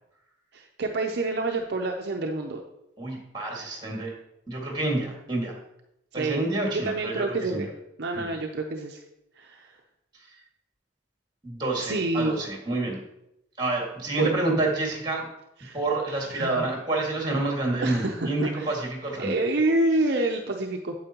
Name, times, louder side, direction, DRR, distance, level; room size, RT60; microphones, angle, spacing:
voice 1, 0.5-2.6 6.1-6.5 6.7-7.7 8.0-9.0 9.4-9.7 11.8-12.4 14.2-14.4 15.6-15.8 16.3-16.6 17.8-18.7 19.2-20.9, right 2 dB, 55° right, 2 dB, 0.6 m, -27 dB
voice 2, 3.0-4.1 4.5-5.5 6.1-7.6 8.1-8.4 11.4-13.0 13.6-15.2 15.7-19.3, right 2 dB, 20° right, -1 dB, 1.9 m, -28 dB
8.8 x 7.8 x 2.9 m, 0.84 s
head